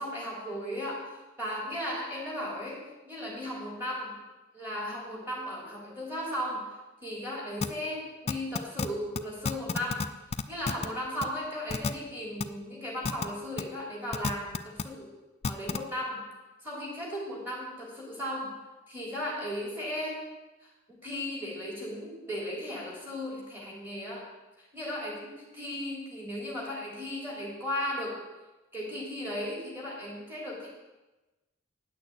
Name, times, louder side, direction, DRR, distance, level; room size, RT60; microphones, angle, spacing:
voice 1, 0.0-4.1 4.5-6.6 7.0-10.1 10.5-15.1 15.4-16.2 16.6-18.5 18.9-20.3 20.6-24.2 24.6-28.2 28.7-30.7, equal, 10° right, -4 dB, 3.2 m, -36 dB
sound 1, 7.6-7.7 8.3-8.9 9.1-9.2 9.4-10.0 10.3-10.9 11.2-11.3 11.7-11.9 12.4-12.5 13.0-13.2 13.6-13.7 14.1-14.8 15.4-15.8, left 4 dB, 30° left, 0.4 m, -29 dB
9.4 x 6.5 x 8.4 m, 1.1 s
head